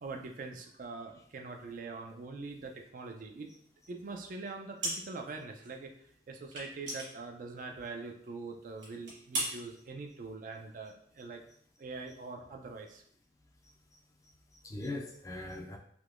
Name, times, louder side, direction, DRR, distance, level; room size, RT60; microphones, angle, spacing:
voice 1, 0.0-3.5 3.9-5.9 6.3-11.4 11.8-13.0, right 3 dB, 50° right, 3 dB, 0.4 m, -43 dB
sound 1, 4.8-5.4 5.6-5.7 6.5-7.9 8.3-8.4 8.8-9.5, right 1 dB, 85° right, 1.3 m, -37 dB
voice 2, 13.6-14.0 14.5-15.8, left 2 dB, 20° left, 1 dB, 0.4 m, -42 dB
3.5 x 3.0 x 2.4 m, 0.65 s
head